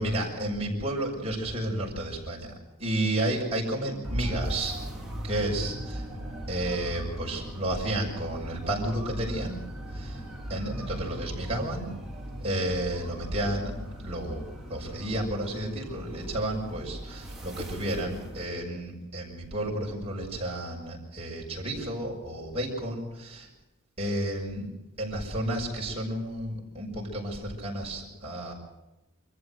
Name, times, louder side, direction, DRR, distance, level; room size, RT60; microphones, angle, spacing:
voice 1, 0.0-2.5 2.8-4.8 5.2-6.0 6.5-9.6 9.9-10.2 10.5-11.9 12.4-13.7 14.0-23.5 24.0-24.7 25.0-28.5, right 1 dB, 30° right, -2 dB, 6.2 m, -31 dB
sound 1, 4.0-18.5, right 1 dB, ahead, 3.9 m, -38 dB
25.0 x 14.5 x 8.0 m, 0.97 s
head